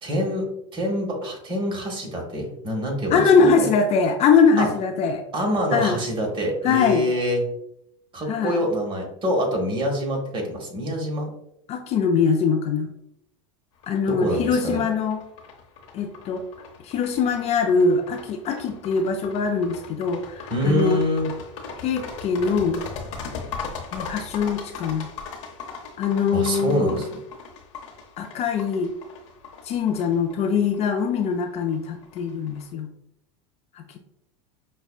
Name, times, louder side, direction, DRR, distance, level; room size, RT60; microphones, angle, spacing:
voice 1, 0.0-3.7 4.6-4.7 5.3-7.4 8.1-11.3 14.1-14.8 20.5-21.3 26.3-27.1, equal, 30° right, 1 dB, 1.2 m, -25 dB
voice 2, 3.1-5.2 5.7-6.0 6.6-7.1 8.3-8.6 11.7-12.9 13.9-15.2 15.9-16.4 16.8-21.0 21.8-22.8 23.9-25.1 26.0-27.0 28.2-28.9 29.6-32.9 33.8-34.0, left 5 dB, 40° left, 5 dB, 0.4 m, -22 dB
sound 1, 13.8-32.6, left 5 dB, 70° left, 0.9 m, -39 dB
5.5 x 2.2 x 2.3 m, 0.78 s
hypercardioid pair, 100°, 17 cm